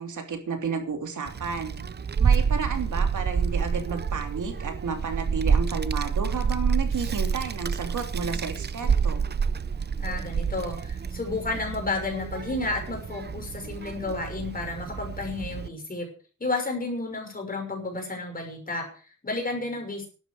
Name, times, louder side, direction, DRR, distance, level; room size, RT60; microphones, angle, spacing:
voice 1, 0.0-1.8 2.2-9.2, right 5 dB, 80° right, 5 dB, 3.1 m, -32 dB
Child speech kid speaking, 1.3-15.7, right 6 dB, 35° right, 0.6 m, -28 dB
voice 2, 10.0-16.1 16.4-20.1, left 2 dB, 30° left, 3 dB, 5.9 m, -32 dB
12.0 x 11.0 x 6.5 m, 0.40 s
wide cardioid pair, 160°, 30 cm